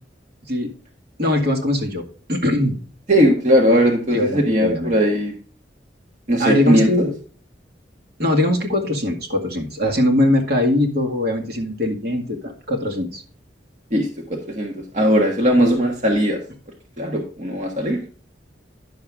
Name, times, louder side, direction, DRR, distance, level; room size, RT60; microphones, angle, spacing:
voice 1, 1.2-2.0 2.3-2.8 4.1-4.9 6.4-7.1 8.2-13.2, left 1 dB, 60° right, 1 dB, 2.1 m, -21 dB
voice 2, 3.1-5.3 6.3-7.0 13.9-16.4 17.0-18.0, equal, 40° right, 0 dB, 1.4 m, -18 dB
10.5 x 6.9 x 3.6 m, 0.42 s
head